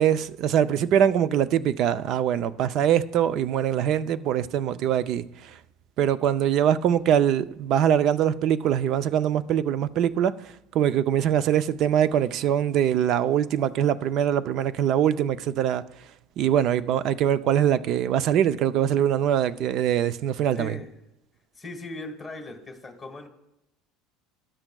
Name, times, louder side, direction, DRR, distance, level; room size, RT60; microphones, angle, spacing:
voice 1, 0.0-5.5 6.0-15.8 16.4-20.8, right 9 dB, 50° right, 0.4 m, -23 dB
voice 2, 20.6-20.9 21.5-23.3, left 2 dB, 5° left, 1.5 m, -38 dB
12.5 x 8.9 x 2.3 m
supercardioid pair, 120°, 0 cm